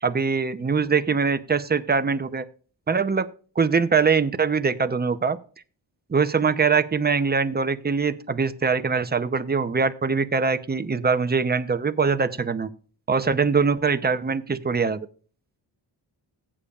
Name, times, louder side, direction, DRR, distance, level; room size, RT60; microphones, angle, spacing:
voice 1, 0.0-2.4 2.9-3.3 3.6-5.4 6.1-12.7 13.1-15.1, right 5 dB, 20° right, 11 dB, 0.7 m, -23 dB
15.0 x 8.6 x 2.4 m, 0.39 s
cardioid pair, 90°, 45 cm